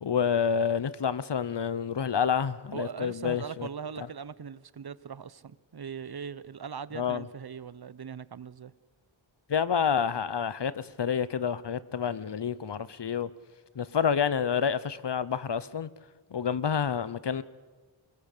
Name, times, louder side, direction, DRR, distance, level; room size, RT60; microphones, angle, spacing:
voice 1, 0.0-3.7 6.9-7.2 9.5-13.3 13.7-15.9 16.3-17.4, left 7 dB, 60° left, 16 dB, 1.0 m, -28 dB
voice 2, 2.7-8.7, right 6 dB, 55° right, 17 dB, 0.9 m, -40 dB
24.0 x 21.5 x 6.8 m, 1.3 s
wide cardioid pair, 60°, 46 cm